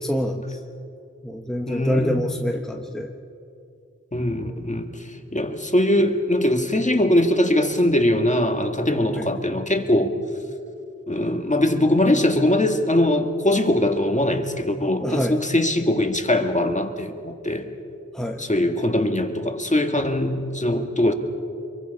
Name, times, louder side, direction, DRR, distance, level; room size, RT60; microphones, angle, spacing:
voice 1, 0.0-0.6 1.2-3.1 4.4-4.6 9.2-9.3 15.0-15.4 18.1-18.4, equal, ahead, 2 dB, 1.3 m, -27 dB
voice 2, 1.7-2.2 4.1-10.1 11.1-17.7 18.4-21.1, left 1 dB, 25° left, 5 dB, 1.9 m, -21 dB
26.0 x 23.0 x 5.5 m, 2.5 s
wide cardioid pair, 60°, 29 cm